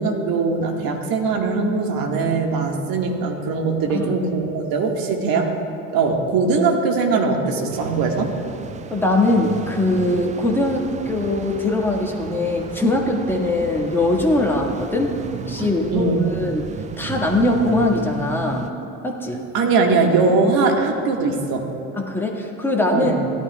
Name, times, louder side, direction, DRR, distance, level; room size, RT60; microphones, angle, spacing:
voice 1, 0.0-5.5 5.9-8.3 15.6-16.3 19.5-21.7 22.9-23.2, right 4 dB, 50° right, 2 dB, 1.8 m, -21 dB
voice 2, 3.9-4.3 8.9-16.7 17.0-18.7 19.0-19.4 22.0-23.2, left 2 dB, 5° left, -1 dB, 1.8 m, -21 dB
sound 1, 7.7-18.7, right 6 dB, 20° right, 0.4 m, -34 dB
17.0 x 11.5 x 2.3 m, 2.7 s
hypercardioid pair, 70°, 44 cm